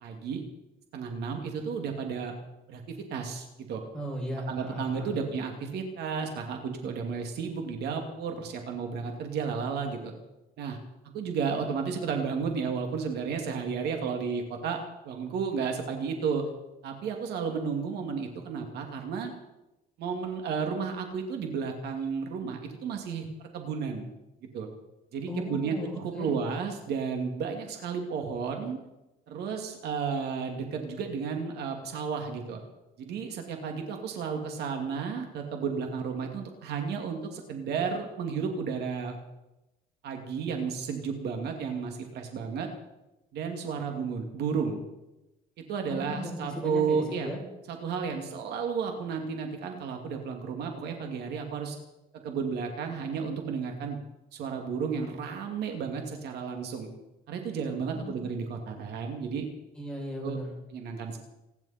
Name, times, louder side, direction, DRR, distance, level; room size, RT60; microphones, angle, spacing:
voice 1, 0.0-0.4 0.9-2.3 2.7-3.8 4.5-10.1 10.6-10.8 11.1-14.8 15.0-16.4 16.8-19.3 20.0-23.3 23.5-24.1 24.5-24.7 25.1-28.8 29.3-32.6 33.0-39.2 40.0-42.7 43.3-44.8 45.7-47.3 47.7-51.8 52.2-54.1 54.3-56.9 57.3-59.5 60.2-60.4 60.7-61.2, right 6 dB, 70° right, 3 dB, 2.5 m, -32 dB
voice 2, 3.9-5.1 25.3-26.3 45.9-47.4 57.9-58.2 59.7-60.5, equal, 5° left, -4 dB, 7.1 m, -37 dB
28.0 x 11.0 x 4.4 m, 0.96 s
cardioid pair, 125°, 17 cm